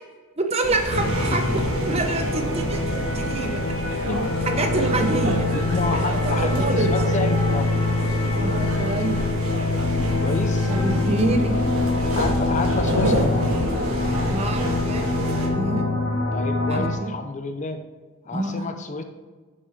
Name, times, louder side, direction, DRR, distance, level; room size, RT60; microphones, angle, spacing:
voice 1, 0.4-3.6 4.5-5.5 6.2-6.9 8.4-9.2 10.7-11.6 14.3-15.2 15.5-15.9 16.7-17.1 18.3-18.7, right 2 dB, 30° right, 5 dB, 0.8 m, -26 dB
sound 1, 0.6-15.5, right 1 dB, 80° right, 1.6 m, -28 dB
sound 2, 0.9-16.9, left 2 dB, 70° left, 1.8 m, -24 dB
voice 2, 3.8-4.3 5.5-7.7 10.1-10.7 12.1-13.4 16.3-17.8 18.3-19.0, left 3 dB, 35° left, 7 dB, 0.5 m, -30 dB
10.0 x 7.0 x 3.5 m, 1.4 s
head